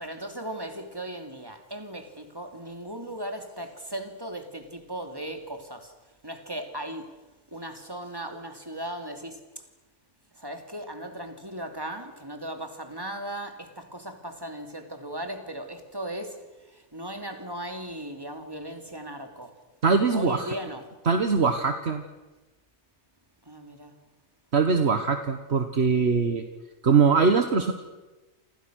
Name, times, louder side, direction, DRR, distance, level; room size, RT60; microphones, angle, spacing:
voice 1, 0.0-5.9 6.2-7.2 7.5-9.6 10.3-19.6 20.1-20.9 23.4-24.0, right 1 dB, 20° right, 2.8 m, -37 dB
voice 2, 19.8-20.5 21.1-22.0 24.5-26.4 26.8-27.7, right 5 dB, 60° right, 1.6 m, -22 dB
29.5 x 25.5 x 6.4 m
omnidirectional pair, 1.3 m